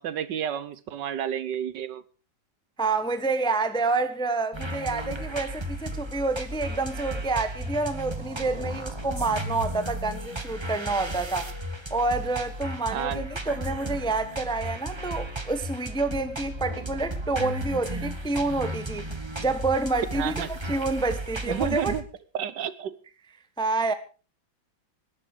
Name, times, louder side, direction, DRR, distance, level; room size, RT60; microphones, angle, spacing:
voice 1, 0.0-2.0 12.9-13.2 20.1-20.5 21.5-22.0 22.3-23.0, right 9 dB, 70° right, 1.5 m, -31 dB
voice 2, 2.8-11.5 11.9-19.1 19.4-21.9 23.6-23.9, right 3 dB, 5° left, 0.7 m, -28 dB
sound 1, 4.5-22.0, right 1 dB, 15° right, 1.2 m, -34 dB
19.5 x 10.5 x 4.8 m
omnidirectional pair, 2.1 m